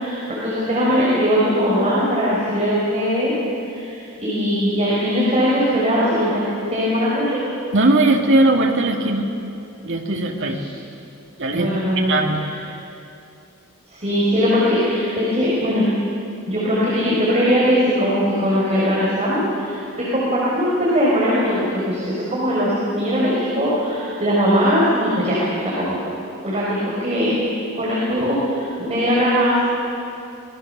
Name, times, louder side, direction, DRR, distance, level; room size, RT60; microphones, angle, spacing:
voice 1, 0.0-3.3 3.7-6.3 6.7-7.4 11.5-12.1 13.9-15.9 16.5-26.0 26.4-27.4 27.8-29.6, equal, 30° right, -7 dB, 5.4 m, -20 dB
voice 2, 7.7-9.2 9.8-10.7 11.4-11.7 12.0-12.4, right 2 dB, 60° right, 1 dB, 2.5 m, -18 dB
26.5 x 20.5 x 6.9 m, 2.7 s
head